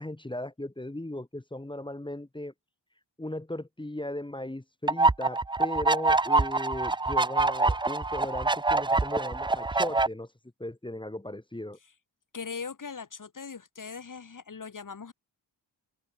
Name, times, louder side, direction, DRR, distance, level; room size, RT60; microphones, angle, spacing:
voice 1, 0.0-2.5 3.2-10.3 10.6-11.8, left 1 dB, 10° left, 1.0 m, -37 dB
sound 1, 4.9-10.1, right 3 dB, 10° right, 0.3 m, -25 dB
voice 2, 12.3-15.1, left 5 dB, 45° left, 1.7 m, -40 dB
wide cardioid pair, 110°, 43 cm